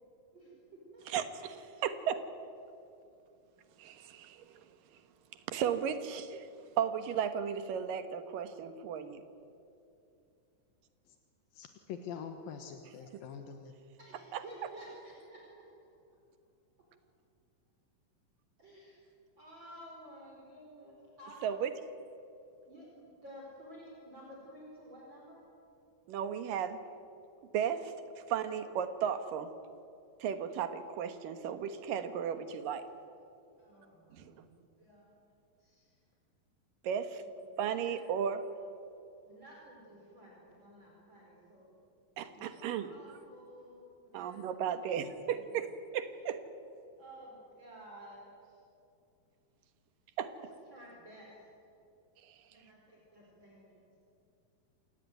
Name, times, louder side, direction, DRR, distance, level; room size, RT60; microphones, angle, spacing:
voice 1, 0.3-1.3 14.0-15.6 18.6-19.0 19.4-21.7 22.7-25.4 33.6-35.1 35.6-36.0 37.2-38.0 38.2-38.3 39.3-41.8 42.3-44.4 44.8-45.0 45.3-45.7 47.0-48.6 50.3-50.5 50.7-51.3 52.5-53.8, right 1 dB, 30° right, -3 dB, 5.1 m, -53 dB
voice 2, 1.1-2.2 3.8-4.6 5.5-6.5 6.8-9.2 14.3-14.4 21.4-21.7 26.1-26.8 27.5-27.9 28.3-29.5 30.2-32.8 34.2-34.3 36.8-37.2 37.6-38.4 42.2-42.9 44.1-46.4 50.2-50.3 52.3-52.4, right 8 dB, 75° right, 10 dB, 3.0 m, -35 dB
voice 3, 11.5-13.8, left 7 dB, 80° left, 6 dB, 3.0 m, -44 dB
28.5 x 17.0 x 9.2 m, 2.7 s
omnidirectional pair, 4.0 m